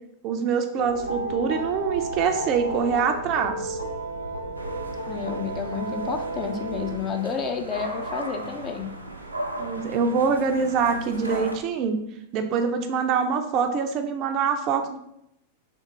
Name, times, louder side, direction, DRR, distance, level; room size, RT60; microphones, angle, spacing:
voice 1, 0.2-3.8 9.6-12.0 12.3-15.0, right 6 dB, 40° right, 6 dB, 0.5 m, -24 dB
sound 1, 0.8-6.9, right 2 dB, 90° left, 0.7 m, -32 dB
sound 2, 4.5-11.6, right 1 dB, 85° right, 0.6 m, -36 dB
voice 2, 5.1-9.0, left 6 dB, 30° left, 5 dB, 0.6 m, -30 dB
3.5 x 3.5 x 4.1 m, 0.79 s
figure-of-eight pair, 90°, 0 cm